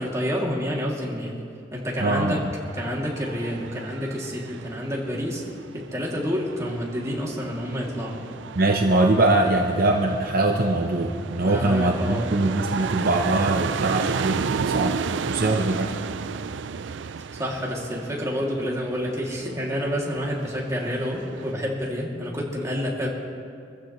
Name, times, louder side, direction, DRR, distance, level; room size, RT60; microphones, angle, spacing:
voice 1, 0.0-1.4 1.7-2.5 2.7-5.4 5.7-8.2 11.4-12.3 17.3-23.1, equal, 15° right, -3 dB, 2.6 m, -28 dB
voice 2, 2.0-2.4 8.6-16.0, right 2 dB, 50° right, 2 dB, 0.8 m, -22 dB
sound 1, 2.0-21.5, right 5 dB, 80° right, 0.4 m, -33 dB
25.5 x 15.0 x 3.2 m, 2.3 s
head